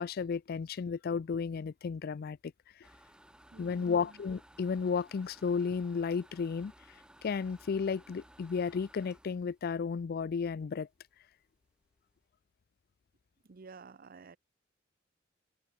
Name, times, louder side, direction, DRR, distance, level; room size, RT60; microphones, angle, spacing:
voice 1, 0.0-2.5 3.6-6.7 7.2-10.9, left 5 dB, 50° left, 0.4 m, -33 dB
sound 1, 2.8-10.6 11.0-11.1 11.5-11.6 11.8-12.2, right 1 dB, 5° right, 1.2 m, -59 dB
voice 2, 3.5-4.2 13.4-14.4, right 4 dB, 50° right, 0.6 m, -52 dB
head